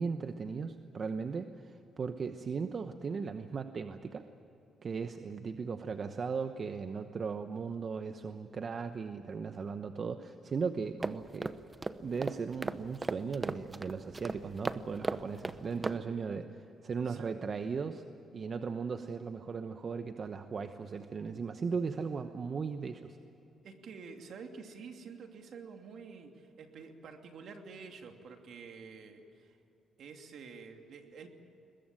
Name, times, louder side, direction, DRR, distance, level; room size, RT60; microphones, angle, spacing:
voice 1, 0.0-4.2 4.8-11.6 12.0-18.0 18.3-23.2, right 5 dB, 45° right, 8 dB, 1.0 m, -37 dB
sound 1, 11.0-16.0, right 3 dB, 20° right, 0.9 m, -38 dB
voice 2, 17.1-17.4 23.6-29.6 30.0-31.3, right 5 dB, 65° right, 4 dB, 2.7 m, -49 dB
22.5 x 21.0 x 9.1 m, 2.9 s
cardioid pair, 90°, 0 cm